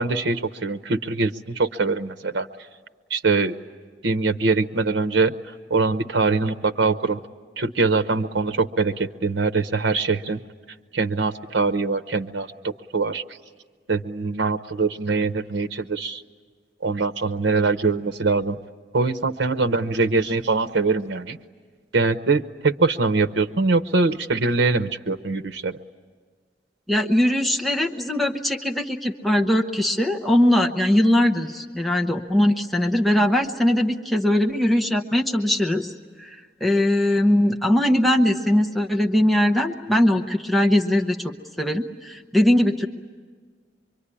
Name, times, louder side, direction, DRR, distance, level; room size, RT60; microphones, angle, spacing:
voice 1, 0.0-2.5 3.1-3.6 4.0-5.3 5.7-7.2 7.6-10.4 10.9-13.2 13.9-16.2 16.8-18.6 18.9-21.4 21.9-25.8, right 3 dB, 90° right, 10 dB, 0.8 m, -23 dB
voice 2, 26.9-35.9 36.2-41.2 41.6-42.9, left 1 dB, ahead, 1 dB, 0.9 m, -20 dB
24.5 x 24.5 x 9.9 m, 1.5 s
head